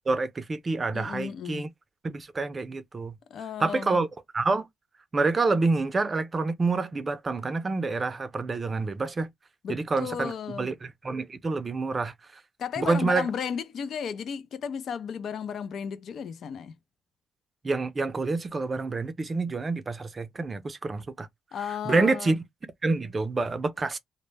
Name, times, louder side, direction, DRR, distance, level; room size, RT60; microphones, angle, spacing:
voice 1, 0.1-1.7 2.0-3.2 3.6-4.1 4.3-4.7 5.1-9.3 9.7-12.4 12.8-13.3 17.6-21.3 21.9-22.4 22.8-24.0, right 3 dB, 30° right, 0.4 m, -27 dB
voice 2, 0.9-1.7 3.3-4.0 9.6-10.7 12.6-16.8 21.5-22.4, left 7 dB, 65° left, 0.4 m, -34 dB
2.1 x 2.0 x 3.2 m
cardioid pair, 90°, 0 cm